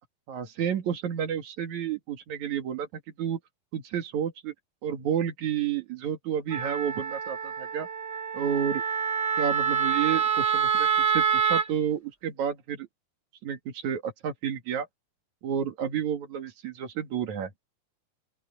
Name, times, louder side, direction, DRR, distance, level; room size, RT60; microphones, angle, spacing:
voice 1, 0.3-3.4 3.7-4.5 4.8-7.9 8.3-8.8 9.4-12.9 13.4-14.9 15.4-17.5, right 8 dB, 55° right, 2.8 m, -30 dB
Wind instrument woodwind instrument, 6.5-11.7, right 7 dB, 15° right, 2.9 m, -26 dB
open air
omnidirectional pair, 4.8 m